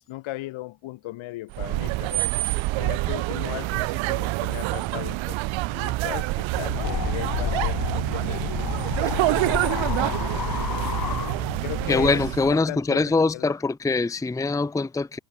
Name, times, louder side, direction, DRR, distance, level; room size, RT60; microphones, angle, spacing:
voice 1, 0.0-2.3 2.8-5.4 5.7-9.3 11.6-12.2 12.5-13.5, left 17 dB, 90° left, 6.5 m, -37 dB
sound 1, 1.5-12.6, right 20 dB, 80° right, 0.8 m, -27 dB
sound 2, 6.5-11.9, left 9 dB, 45° left, 3.5 m, -30 dB
voice 2, 11.9-15.2, left 3 dB, 5° left, 0.7 m, -23 dB
cardioid pair, 120°, 46 cm